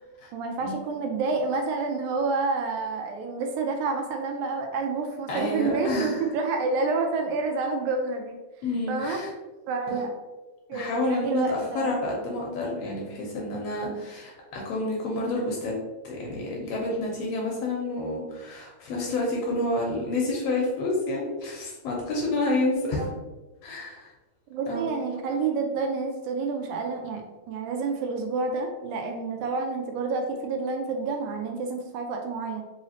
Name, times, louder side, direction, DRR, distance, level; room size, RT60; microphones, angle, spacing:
voice 1, 0.3-8.4 8.9-9.2 9.7-10.1 10.7-11.9 22.8-23.1 24.5-27.2 27.5-32.6, right 4 dB, 80° right, 3 dB, 1.9 m, -29 dB
voice 2, 5.3-6.2 8.6-9.3 9.9-10.0 10.7-15.7 16.0-23.0 23.6-24.1 24.7-24.9, left 2 dB, 75° left, -2 dB, 1.5 m, -29 dB
4.8 x 3.0 x 2.8 m, 1.2 s
omnidirectional pair, 3.5 m